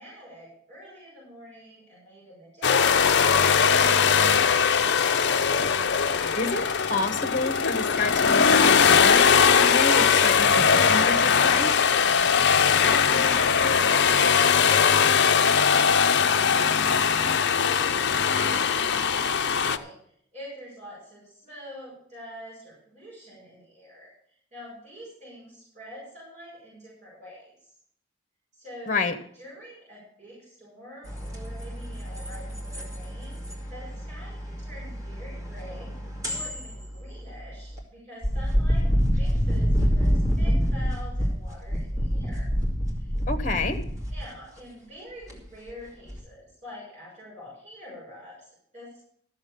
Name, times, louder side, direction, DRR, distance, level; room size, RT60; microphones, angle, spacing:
voice 1, 0.0-3.2 12.8-27.7 28.5-29.1 29.3-38.9 39.2-42.5 42.9-43.1 44.1-49.0, equal, 35° right, -8 dB, 6.6 m, -46 dB
sound 1, 2.6-19.8, left 6 dB, 60° left, 0.6 m, -20 dB
voice 2, 6.3-11.7 28.9-29.1 43.3-43.8, left 3 dB, 40° left, 8 dB, 1.1 m, -29 dB
sound 2, 31.0-37.8 38.2-44.3 45.3-45.7 46.1-46.2, equal, 15° right, 2.4 m, -27 dB
13.0 x 7.2 x 6.7 m, 0.65 s
head